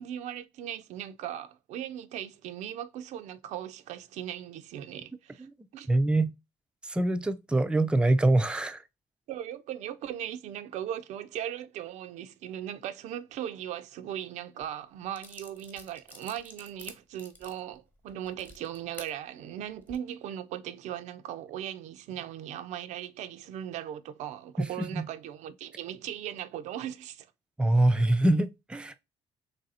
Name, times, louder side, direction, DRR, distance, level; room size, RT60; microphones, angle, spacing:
voice 1, 0.0-5.5 5.7-5.9 9.3-27.3, right 10 dB, 75° right, 0.4 m, -38 dB
voice 2, 5.9-6.3 6.8-8.8 24.6-25.1 27.6-28.9, right 2 dB, 10° right, 0.4 m, -24 dB
sound 1, 14.6-14.7 15.1-19.1 19.7-20.0, left 1 dB, 15° left, 1.0 m, -49 dB
3.2 x 2.6 x 4.1 m
cardioid pair, 90°, 12 cm